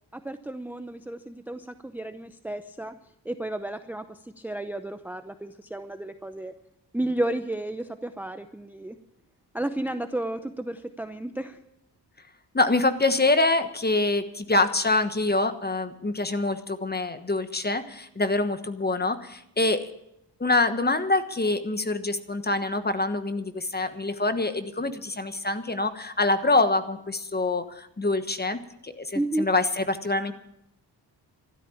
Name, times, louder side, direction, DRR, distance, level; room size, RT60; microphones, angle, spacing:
voice 1, 0.1-3.0 3.2-6.5 6.9-9.0 9.5-11.6 29.1-29.5, right 1 dB, 5° right, 10 dB, 0.6 m, -32 dB
voice 2, 12.5-19.9 20.4-30.3, left 2 dB, 20° left, 10 dB, 1.3 m, -25 dB
13.0 x 12.5 x 7.2 m, 0.80 s
cardioid pair, 85°, 43 cm